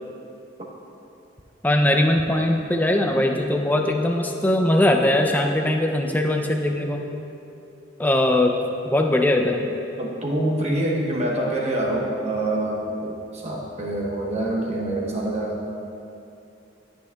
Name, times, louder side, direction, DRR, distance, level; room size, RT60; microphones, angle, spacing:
voice 1, 1.6-7.0 8.0-8.5 8.8-9.6, left 1 dB, 10° left, 2 dB, 0.4 m, -20 dB
sound 1, 3.0-10.1, left 1 dB, 70° right, 1.8 m, -41 dB
voice 2, 10.0-15.6, right 1 dB, 35° right, -2 dB, 1.1 m, -26 dB
12.5 x 6.4 x 2.3 m, 2.6 s
head